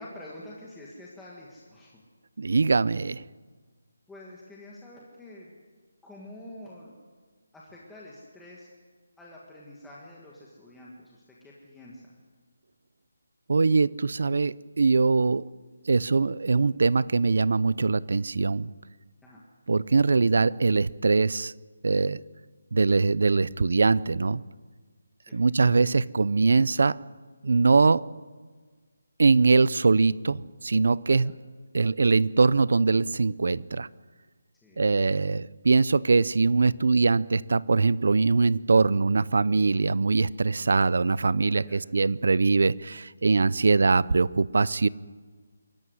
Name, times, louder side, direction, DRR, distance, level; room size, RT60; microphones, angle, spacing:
voice 1, 0.0-2.0 4.1-5.5 6.0-6.9 7.5-8.7 9.2-12.1 19.2-19.4 25.3-25.4 31.1-31.3 34.6-35.0 41.5-41.8 43.8-44.1, left 1 dB, 5° left, -6 dB, 1.6 m, -47 dB
voice 2, 2.4-3.2 13.5-15.4 15.9-18.7 19.7-21.5 21.8-22.2 22.7-24.4 25.3-27.0 27.4-28.1 29.2-31.3 31.7-33.9 34.8-44.9, right 4 dB, 50° right, 21 dB, 0.6 m, -22 dB
25.5 x 14.5 x 9.7 m, 1.5 s
hypercardioid pair, 180°, 0 cm